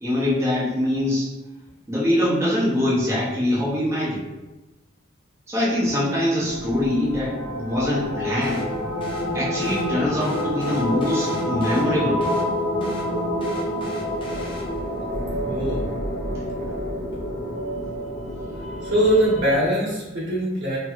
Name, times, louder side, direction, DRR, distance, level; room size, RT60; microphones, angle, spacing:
voice 1, 0.0-1.3 1.9-4.3 5.5-8.7 9.3-12.3, left 1 dB, 15° right, -8 dB, 0.6 m, -23 dB
sound 1, 6.4-19.6, equal, 80° left, 0.8 m, -28 dB
sound 2, 8.4-15.0, left 1 dB, 25° left, 0.6 m, -42 dB
voice 2, 15.2-15.8 18.8-20.8, right 1 dB, 65° right, -6 dB, 1.2 m, -22 dB
2.9 x 2.9 x 2.3 m, 1.1 s
head